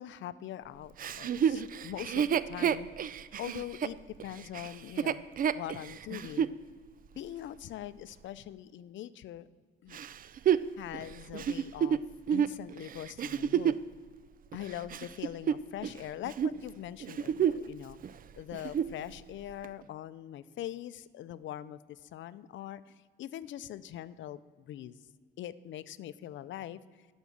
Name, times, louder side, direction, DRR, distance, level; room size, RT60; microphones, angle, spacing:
voice 1, 0.0-2.9 3.4-5.3 5.5-6.5 7.1-9.5 9.8-10.0 10.8-12.0 12.3-13.8 14.5-18.0 18.3-25.0 25.4-27.1, left 12 dB, 75° left, 16 dB, 0.5 m, -42 dB
Chuckle chortle, 1.0-6.6 7.2-7.3 9.9-13.9 14.5-16.0 16.3-16.6 17.0-17.7 18.0-18.1 18.5-19.0 19.6-19.7, right 8 dB, 45° right, 0.4 m, -30 dB
12.0 x 6.3 x 7.1 m, 1.5 s
cardioid pair, 90°, 20 cm